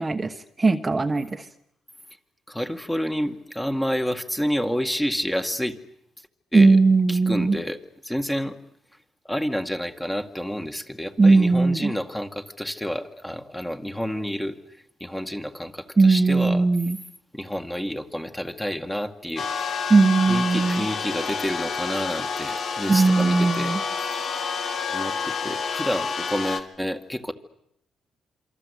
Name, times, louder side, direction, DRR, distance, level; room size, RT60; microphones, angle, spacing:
voice 1, 0.0-1.5 6.5-7.6 11.2-11.9 16.0-17.0 19.9-20.9 22.9-23.8, right 3 dB, 20° right, 6 dB, 1.2 m, -19 dB
voice 2, 2.5-5.8 6.5-6.8 7.1-7.8 8.0-8.5 9.3-14.6 15.0-16.6 17.3-19.7 20.3-23.7 24.9-27.3, equal, 10° left, 6 dB, 2.0 m, -29 dB
sound 1, 19.4-26.6, left 5 dB, 60° left, 2.4 m, -29 dB
27.0 x 24.0 x 8.3 m, 0.77 s
cardioid pair, 90°, 0 cm